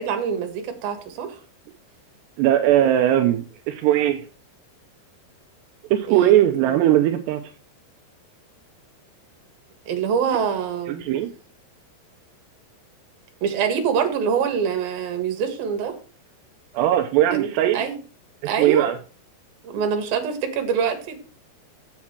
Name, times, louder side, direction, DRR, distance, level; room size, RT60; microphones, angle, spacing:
voice 1, 0.0-1.4 6.1-6.3 9.9-11.0 13.4-15.9 17.3-18.0 18.5-18.9 19.6-21.2, right 7 dB, 65° right, 5 dB, 3.3 m, -25 dB
voice 2, 2.4-4.2 5.9-7.4 10.9-11.3 16.7-17.9 18.4-19.0, right 12 dB, 85° right, 5 dB, 2.9 m, -19 dB
7.6 x 7.3 x 5.9 m, 0.36 s
omnidirectional pair, 4.9 m